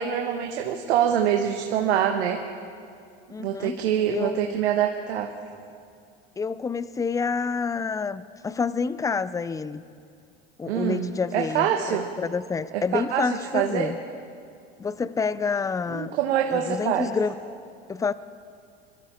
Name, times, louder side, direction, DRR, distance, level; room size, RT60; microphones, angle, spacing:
voice 1, 0.0-2.4 3.4-5.3 10.7-12.1 12.7-13.9 15.9-17.1, right 9 dB, 80° right, 3 dB, 1.2 m, -25 dB
voice 2, 3.3-3.8 4.1-4.6 6.4-9.8 10.6-14.0 14.8-16.1 16.5-17.3 17.9-18.1, left 5 dB, 10° left, 16 dB, 0.4 m, -28 dB
23.0 x 13.0 x 4.4 m, 2.3 s
hypercardioid pair, 95°, 32 cm